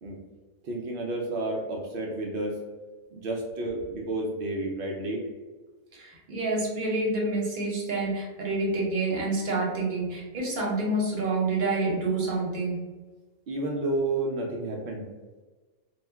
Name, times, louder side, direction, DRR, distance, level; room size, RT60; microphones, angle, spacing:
voice 1, 0.6-2.6 3.1-5.2 13.5-15.1, right 2 dB, 80° right, -1 dB, 0.5 m, -31 dB
voice 2, 5.9-12.8, right 2 dB, 45° right, -3 dB, 0.7 m, -28 dB
2.4 x 2.2 x 3.3 m, 1.3 s
omnidirectional pair, 1.5 m